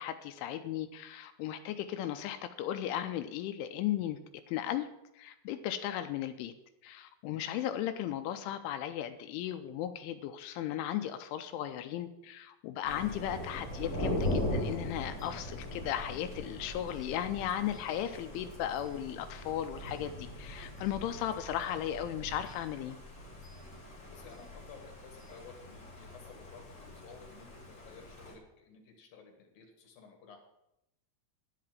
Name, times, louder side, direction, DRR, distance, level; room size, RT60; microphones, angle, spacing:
voice 1, 0.0-4.2 4.5-4.9 5.2-6.5 6.8-23.0, left 11 dB, 85° left, 9 dB, 2.9 m, -36 dB
Thunder, 12.8-28.3, left 1 dB, 30° left, 1.4 m, -40 dB
voice 2, 24.1-30.4, left 5 dB, 60° left, 3 dB, 2.7 m, -54 dB
11.0 x 5.8 x 8.9 m, 0.85 s
omnidirectional pair, 5.9 m